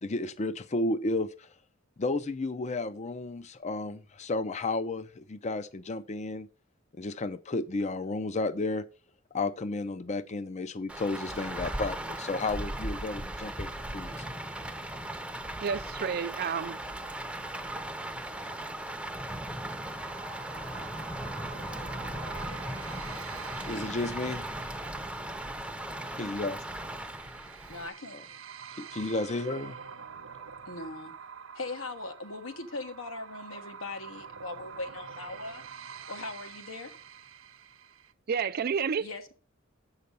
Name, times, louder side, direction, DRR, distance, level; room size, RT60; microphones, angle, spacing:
voice 1, 0.0-1.5 2.0-6.5 6.9-8.8 9.3-14.2 23.7-24.5 26.2-26.6 28.1-28.2 28.8-29.8, left 2 dB, 35° left, 0.5 m, -32 dB
Rain, 10.9-27.9, right 1 dB, 5° right, 0.7 m, -37 dB
voice 2, 15.6-16.8 38.3-39.1, right 6 dB, 50° right, 0.4 m, -30 dB
sound 1, 19.5-38.1, right 6 dB, 80° right, 0.7 m, -47 dB
voice 3, 27.7-28.4 30.7-31.1 31.5-35.6 36.1-36.9 39.0-39.3, left 3 dB, 85° left, 1.3 m, -40 dB
7.5 x 5.6 x 6.7 m
head